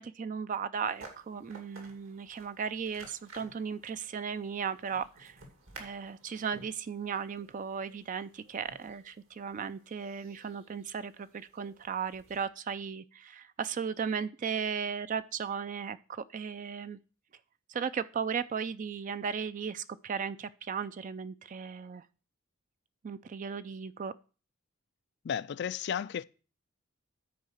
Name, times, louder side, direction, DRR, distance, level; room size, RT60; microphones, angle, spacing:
voice 1, 0.0-5.4 5.8-17.0 17.7-22.0 23.0-24.1, right 6 dB, 40° right, 0.3 m, -36 dB
sound 1, 0.8-12.4, right 3 dB, 75° right, 2.5 m, -55 dB
voice 2, 25.2-26.2, left 8 dB, 55° left, 0.4 m, -33 dB
10.0 x 4.7 x 6.4 m
head